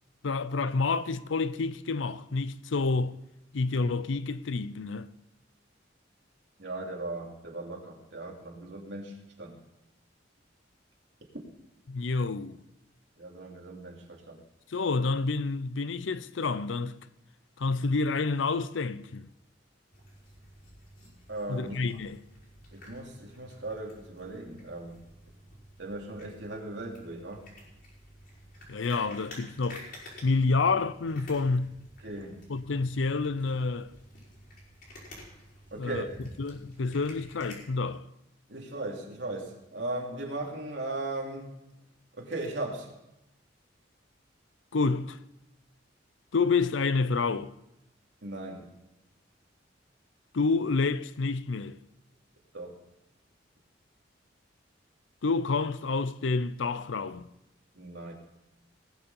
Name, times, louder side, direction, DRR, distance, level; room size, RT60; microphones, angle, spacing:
voice 1, 0.2-3.2 3.5-5.1 11.9-12.6 14.7-17.0 17.6-19.3 21.5-22.2 28.7-29.9 30.2-31.7 32.5-33.9 35.8-36.1 36.4-38.1 44.7-45.2 46.3-47.5 50.3-51.8 55.2-57.3, left 4 dB, 85° left, 0.6 m, -28 dB
voice 2, 6.6-9.6 13.2-14.4 21.3-21.7 22.7-25.0 25.8-27.5 32.0-32.4 35.7-36.1 38.5-41.6 42.1-42.9 48.2-48.7 52.5-52.8 57.7-58.1, right 2 dB, 70° right, 2.8 m, -38 dB
sound 1, 19.9-37.6, equal, 50° left, 4.6 m, -51 dB
19.0 x 7.1 x 5.5 m
head